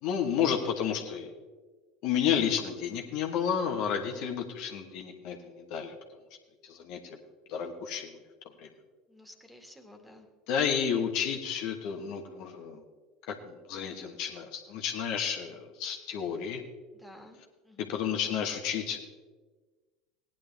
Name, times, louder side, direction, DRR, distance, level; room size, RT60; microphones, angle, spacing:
voice 1, 0.0-1.3 2.0-5.9 6.6-7.2 7.5-8.2 8.6-8.7 10.5-12.8 13.3-16.6 17.9-19.0, left 8 dB, 60° left, 2 dB, 1.4 m, -31 dB
voice 2, 9.1-10.3 16.9-17.4 17.6-18.0, left 1 dB, 5° right, 5 dB, 2.1 m, -52 dB
18.0 x 10.5 x 3.5 m, 1.3 s
figure-of-eight pair, 70°, 0 cm